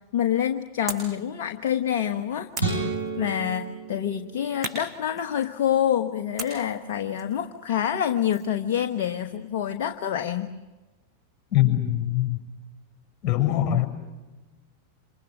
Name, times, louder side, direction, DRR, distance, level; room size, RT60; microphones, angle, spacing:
voice 1, 0.1-2.9 3.2-10.5, left 10 dB, 50° left, 6 dB, 1.2 m, -27 dB
sound 1, 0.9-1.2 2.5-3.5 4.6-5.7 6.4-8.6, right 2 dB, 20° right, 7.0 m, -38 dB
sound 2, 2.6-4.9, right 3 dB, 90° right, 7.4 m, -31 dB
voice 2, 11.5-12.4 13.2-13.9, left 13 dB, 35° left, 4 dB, 6.4 m, -22 dB
28.5 x 27.0 x 6.5 m, 1.2 s
figure-of-eight pair, 90°, 0 cm